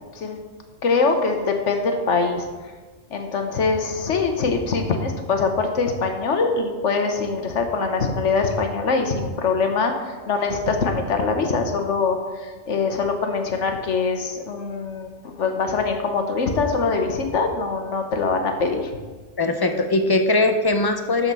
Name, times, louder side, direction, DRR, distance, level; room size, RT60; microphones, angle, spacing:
voice 1, 0.8-2.5 3.1-18.9, left 4 dB, 70° left, 5 dB, 1.3 m, -23 dB
voice 2, 19.4-21.3, left 2 dB, 30° left, 6 dB, 0.4 m, -20 dB
12.0 x 4.4 x 5.4 m, 1.3 s
omnidirectional pair, 1.3 m